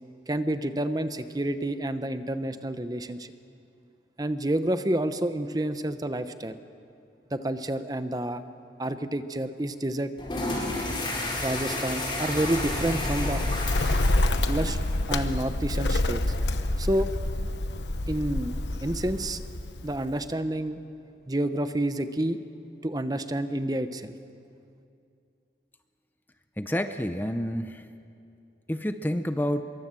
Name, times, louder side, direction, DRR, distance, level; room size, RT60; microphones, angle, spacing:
voice 1, 0.3-3.3 4.2-6.5 7.3-8.4 8.8-10.1 11.4-13.4 14.5-14.8 15.1-16.2 16.8-17.1 18.1-19.4 19.8-20.8 21.3-22.4 22.8-24.1, right 1 dB, 20° right, 10 dB, 0.8 m, -29 dB
sound 1, 10.2-15.2, left 1 dB, 30° left, 4.9 m, -32 dB
Bird, 12.4-20.2, left 1 dB, 90° left, 1.1 m, -28 dB
voice 2, 26.6-27.9 28.7-29.6, equal, 10° left, 8 dB, 0.6 m, -29 dB
25.0 x 23.0 x 7.5 m, 2.5 s
head